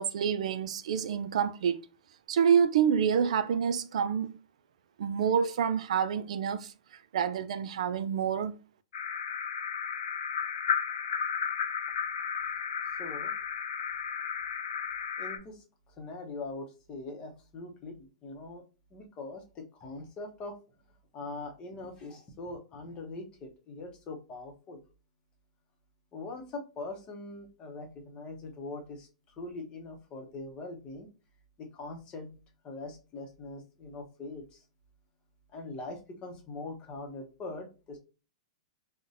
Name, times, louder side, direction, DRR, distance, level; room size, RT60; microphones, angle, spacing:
voice 1, 0.0-1.8 2.3-4.4 5.0-6.7 7.1-8.6, right 7 dB, 75° right, 0.3 m, -27 dB
sound 1, 8.9-15.4, left 7 dB, 75° left, 0.5 m, -33 dB
voice 2, 13.0-13.3 15.2-18.6 18.9-20.5 21.1-24.8 26.1-31.1 31.6-32.4 32.6-34.6 35.5-38.0, left 2 dB, 25° left, 0.8 m, -42 dB
3.9 x 2.2 x 2.5 m
hypercardioid pair, 145°, 4 cm